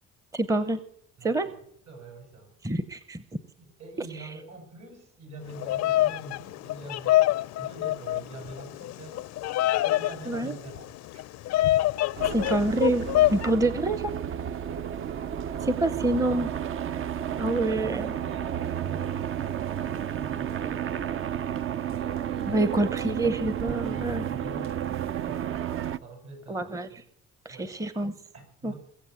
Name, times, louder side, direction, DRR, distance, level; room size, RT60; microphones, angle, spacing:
voice 1, 0.3-0.8 1.2-1.5 2.6-3.2 10.3-10.6 12.3-14.1 15.6-16.5 17.4-18.1 22.5-24.3 26.5-27.0 27.4-28.1 28.6-28.7, right 2 dB, 10° right, 13 dB, 0.8 m, -27 dB
voice 2, 1.9-2.5 3.6-7.3 7.6-9.4 9.8-11.2 14.6-15.0 15.5-16.1 17.4-21.2 21.9-23.0 23.4-25.6 26.0-27.0 27.5-27.7 28.3-28.7, right 2 dB, 65° right, 4 dB, 7.3 m, -45 dB
Bird vocalization bird call bird song, 5.5-13.5, left 15 dB, 60° left, 0.5 m, -26 dB
sound 1, 12.2-26.0, right 10 dB, 45° right, 0.6 m, -32 dB
21.5 x 7.6 x 8.3 m, 0.67 s
cardioid pair, 115°, 29 cm